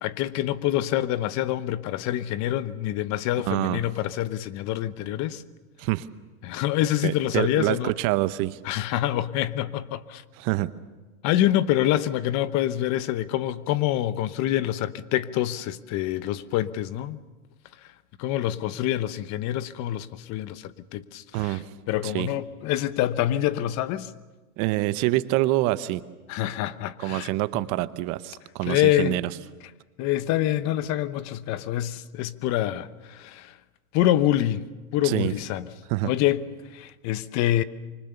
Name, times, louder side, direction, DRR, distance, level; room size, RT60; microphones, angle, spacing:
voice 1, 0.0-5.4 6.4-7.9 8.6-10.2 11.2-17.2 18.2-21.6 21.9-24.1 26.3-27.3 28.6-29.2 30.0-33.6 33.9-34.7 34.9-35.7 36.0-36.5 36.7-37.6, left 13 dB, 40° left, 0.9 m, -26 dB
voice 2, 3.4-3.8 5.8-6.1 7.0-8.6 10.4-10.7 21.3-21.7 22.0-22.3 24.6-26.0 27.0-29.3 35.0-35.3 35.9-36.1, right 18 dB, 40° right, 0.9 m, -26 dB
26.5 x 25.0 x 6.9 m
hypercardioid pair, 125°, 45 cm